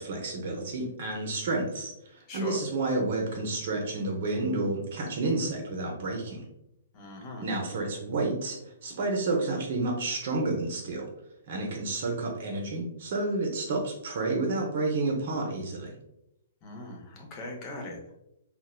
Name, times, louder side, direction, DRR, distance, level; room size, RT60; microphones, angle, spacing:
voice 1, 0.0-6.4 7.4-11.1 11.5-15.9, right 2 dB, 55° right, 0 dB, 0.6 m, -30 dB
voice 2, 2.3-2.6 6.9-7.5 16.6-18.2, left 2 dB, 35° left, 1 dB, 0.6 m, -40 dB
2.9 x 2.0 x 2.3 m, 0.83 s
hypercardioid pair, 125°, 0 cm